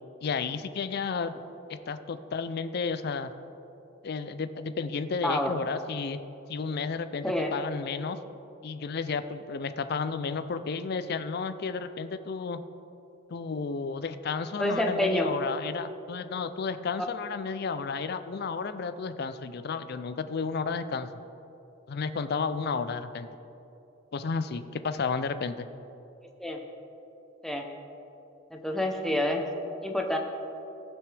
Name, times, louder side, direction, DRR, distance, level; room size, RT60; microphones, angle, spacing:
voice 1, 0.2-1.3 1.7-3.3 4.0-6.2 6.5-8.2 8.6-12.6 13.3-21.2 21.9-23.3 24.1-25.7, left 5 dB, 55° left, 11 dB, 0.4 m, -32 dB
voice 2, 14.6-15.3 17.0-17.1 26.4-26.6 27.4-27.7 28.5-29.4 29.8-30.2, left 1 dB, ahead, 2 dB, 0.8 m, -28 dB
18.0 x 6.1 x 3.4 m, 3.0 s
head